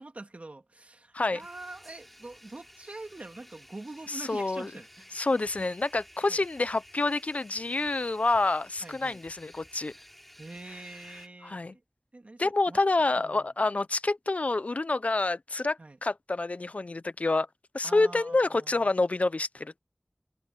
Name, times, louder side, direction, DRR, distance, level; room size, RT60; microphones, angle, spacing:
voice 1, 0.0-5.2 6.3-6.4 8.8-9.2 10.4-11.8 12.1-12.8 13.2-13.5 15.8-16.0 17.8-18.9, right 2 dB, 75° right, 2.8 m, -45 dB
sound 1, 1.4-11.3, equal, 5° left, 7.9 m, -53 dB
voice 2, 4.1-4.7 5.1-9.9 11.4-11.7 12.4-17.5 17.7-19.8, left 2 dB, 80° left, 0.7 m, -28 dB
wide cardioid pair, 45°, 2 cm